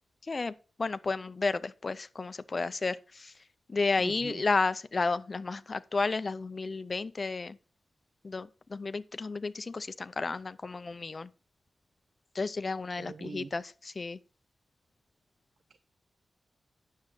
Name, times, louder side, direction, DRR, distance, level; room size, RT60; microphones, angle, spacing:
voice 1, 0.8-3.3 3.7-7.6 8.2-11.3 12.3-14.2, left 3 dB, 35° left, 0.5 m, -32 dB
voice 2, 4.0-4.4 13.0-13.5, right 5 dB, 70° right, 0.6 m, -42 dB
9.5 x 7.3 x 4.8 m
wide cardioid pair, 160°, 0 cm